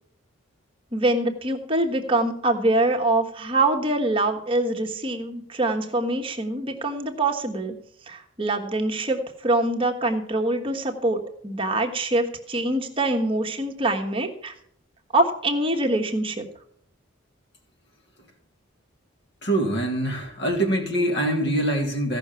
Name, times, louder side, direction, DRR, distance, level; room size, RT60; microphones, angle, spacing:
voice 1, 0.9-7.7 8.1-14.5 15.1-16.5, right 2 dB, 25° right, 2 dB, 1.3 m, -24 dB
voice 2, 19.4-22.2, right 1 dB, 55° left, 2 dB, 2.9 m, -24 dB
15.5 x 6.0 x 6.9 m, 0.65 s
head